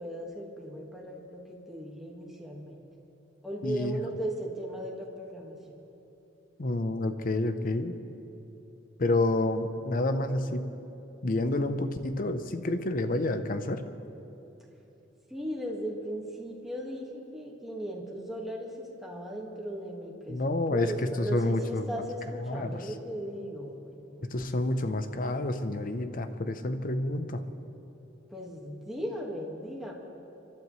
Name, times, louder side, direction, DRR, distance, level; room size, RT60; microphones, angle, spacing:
voice 1, 0.0-2.8 3.4-5.8 15.3-18.7 19.0-20.4 20.7-24.3 28.3-29.9, right 1 dB, ahead, -2 dB, 1.7 m, -37 dB
voice 2, 3.6-4.0 6.6-8.0 9.0-10.7 11.2-13.8 20.3-22.0 22.4-22.9 24.2-27.4, left 2 dB, 50° left, 9 dB, 0.7 m, -29 dB
30.0 x 12.0 x 3.2 m, 3.0 s
head